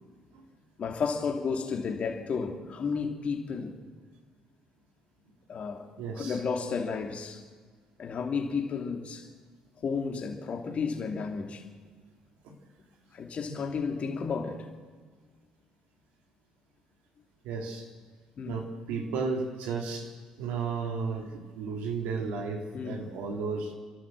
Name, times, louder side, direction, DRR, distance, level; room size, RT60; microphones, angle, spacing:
voice 1, 0.8-3.8 5.5-5.9 6.1-7.4 8.0-9.3 9.8-11.6 13.1-14.7 18.4-18.6 22.7-23.0, left 5 dB, 50° left, 3.0 m, -32 dB
voice 2, 6.0-6.4 12.4-12.5 17.4-17.8 18.4-20.1 20.4-23.7, right 4 dB, 80° right, 3.2 m, -33 dB
30.0 x 12.0 x 7.7 m
supercardioid pair, 70°, 3 cm